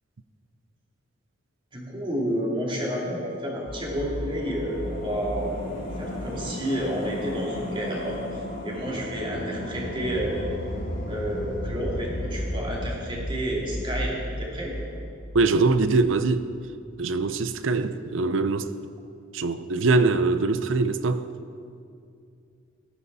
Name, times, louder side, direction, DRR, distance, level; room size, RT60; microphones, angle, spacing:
voice 1, 1.7-10.5 11.0-14.7, equal, 25° right, 2.9 m, -30 dB
sound 1, 3.6-16.1 16.3-16.4, equal, 65° left, 3.8 m, -34 dB
voice 2, 15.3-16.5 17.0-18.7 19.3-21.3, right 3 dB, 70° right, 0.7 m, -23 dB
18.0 x 14.0 x 4.1 m
head